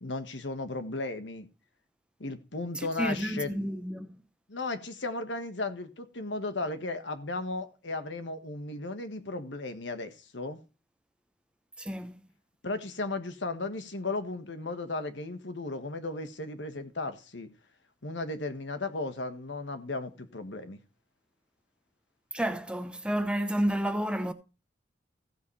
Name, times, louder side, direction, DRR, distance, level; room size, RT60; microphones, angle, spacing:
voice 1, 0.0-1.5 2.2-3.7 4.5-10.6 12.6-17.5 18.0-20.8, left 2 dB, 70° left, 1.5 m, -35 dB
voice 2, 2.8-4.2 11.8-12.2 22.3-24.3, equal, 5° right, 0.8 m, -31 dB
15.5 x 8.2 x 3.2 m
head